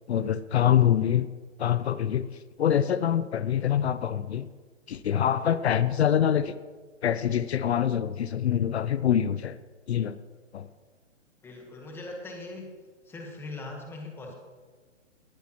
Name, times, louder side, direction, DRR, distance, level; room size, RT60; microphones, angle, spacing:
voice 1, 0.1-1.3 1.6-2.3 2.6-4.5 4.9-6.5 7.0-9.6 9.9-10.2 10.5-10.7, left 10 dB, 60° left, 14 dB, 0.6 m, -25 dB
voice 2, 11.4-12.7 13.0-14.3, left 2 dB, 5° left, 2 dB, 1.2 m, -40 dB
18.5 x 10.5 x 3.0 m, 1.4 s
hypercardioid pair, 155°, 37 cm